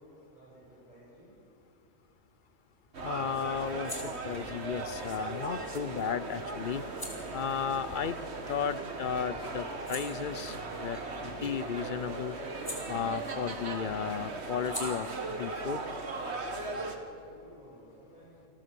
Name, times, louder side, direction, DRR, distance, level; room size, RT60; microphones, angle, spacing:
voice 1, 0.0-1.4 17.0-18.5, equal, 30° right, -6 dB, 7.4 m, -55 dB
sound 1, 2.1-8.9 9.3-13.6 13.8-17.2, left 1 dB, 15° left, 3.4 m, -49 dB
sound 2, 2.9-17.0, right 3 dB, 50° right, 1.8 m, -38 dB
voice 2, 3.0-6.8 7.3-8.2 8.5-11.0 11.4-12.4 12.9-15.1 15.4-15.8, left 7 dB, 55° left, 14 dB, 0.6 m, -34 dB
26.5 x 14.5 x 6.9 m, 2.5 s
omnidirectional pair, 1.4 m